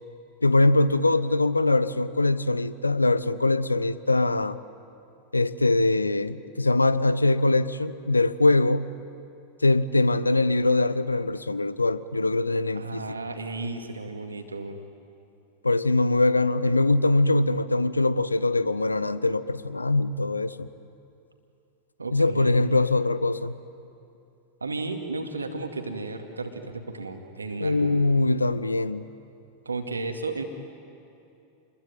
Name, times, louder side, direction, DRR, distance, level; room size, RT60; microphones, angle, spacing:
voice 1, 0.4-4.6 5.3-8.9 9.6-13.0 15.6-20.7 22.1-23.6 27.6-29.1, left 2 dB, 80° left, 0.7 m, -22 dB
voice 2, 12.7-14.8 22.0-22.6 24.6-28.0 29.7-30.4, right 3 dB, 80° right, 2.3 m, -33 dB
28.5 x 21.5 x 9.3 m
figure-of-eight pair, 90°, 0 cm